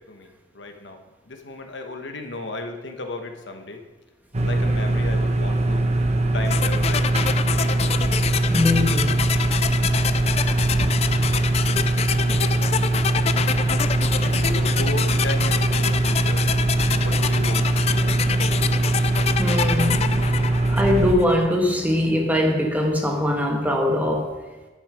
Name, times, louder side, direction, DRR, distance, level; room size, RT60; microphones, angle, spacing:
voice 1, 0.1-3.8 4.4-5.8 6.3-7.3 14.2-16.4 17.0-18.2, left 2 dB, 70° left, 5 dB, 1.2 m, -34 dB
sound 1, 4.3-21.1, right 2 dB, 35° right, 0.9 m, -22 dB
sound 2, 6.5-21.4, left 8 dB, 35° left, 0.3 m, -27 dB
voice 2, 8.5-9.3 19.4-20.2 20.7-24.3, left 1 dB, 10° right, 1 dB, 1.4 m, -22 dB
11.0 x 7.3 x 4.9 m, 1.2 s
head